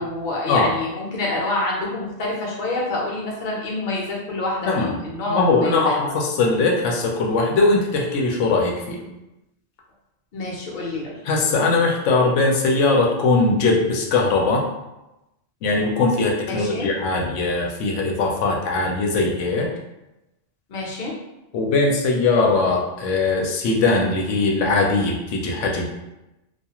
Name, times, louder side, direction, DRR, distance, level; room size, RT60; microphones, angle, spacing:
voice 1, 0.0-6.1 10.3-11.2 16.5-16.9 20.7-21.1, left 2 dB, 50° left, -3 dB, 0.7 m, -27 dB
voice 2, 5.3-9.0 11.2-14.6 15.6-19.7 21.5-25.9, left 3 dB, 90° left, -1 dB, 0.9 m, -20 dB
2.3 x 2.3 x 2.9 m, 0.95 s
omnidirectional pair, 1.2 m